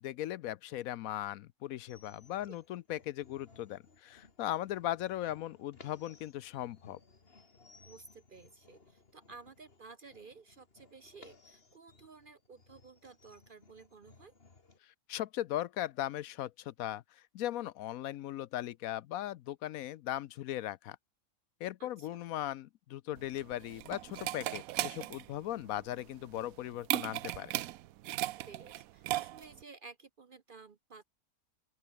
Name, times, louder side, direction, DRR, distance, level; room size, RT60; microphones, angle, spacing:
voice 1, 0.0-7.0 14.8-21.0 21.6-27.5, left 13 dB, 75° left, 1.0 m, -38 dB
sound 1, 1.9-14.8, left 4 dB, 40° left, 2.3 m, -61 dB
voice 2, 7.9-14.4 21.8-22.2 28.4-31.0, right 4 dB, 45° right, 0.8 m, -54 dB
sound 2, 23.2-29.6, right 15 dB, 75° right, 1.0 m, -37 dB
open air
omnidirectional pair, 1.6 m